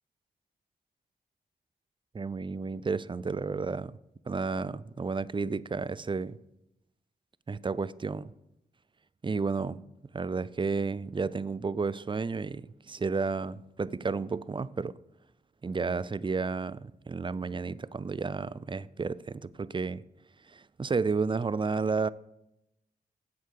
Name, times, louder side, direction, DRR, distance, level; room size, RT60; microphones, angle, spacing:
voice 1, 2.1-4.0 4.3-6.4 7.5-8.3 9.2-9.8 10.1-14.9 15.6-20.0 20.5-22.1, right 4 dB, 30° right, 0.4 m, -32 dB
8.5 x 7.5 x 6.6 m
cardioid pair, 45°, 17 cm